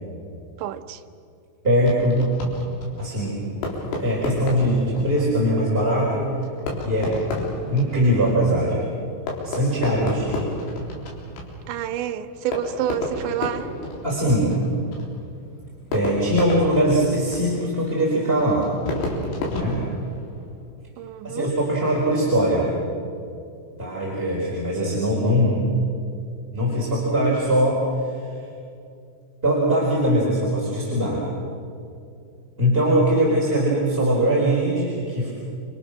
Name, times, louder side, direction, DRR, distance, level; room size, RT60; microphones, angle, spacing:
voice 1, 0.6-1.0 11.7-13.7 21.0-21.5, right 10 dB, 75° right, 8 dB, 2.9 m, -28 dB
voice 2, 1.6-2.3 3.0-3.4 4.0-6.3 6.8-7.2 7.7-8.9 9.4-10.5 14.0-14.6 15.9-18.7 19.5-19.8 21.2-22.7 23.8-25.6 26.5-28.1 29.4-31.2 32.6-35.3, equal, 10° right, -5 dB, 3.9 m, -21 dB
Fireworks, 1.8-20.6, left 1 dB, 80° left, 6.5 m, -33 dB
29.0 x 27.5 x 6.3 m, 2.5 s
omnidirectional pair, 5.8 m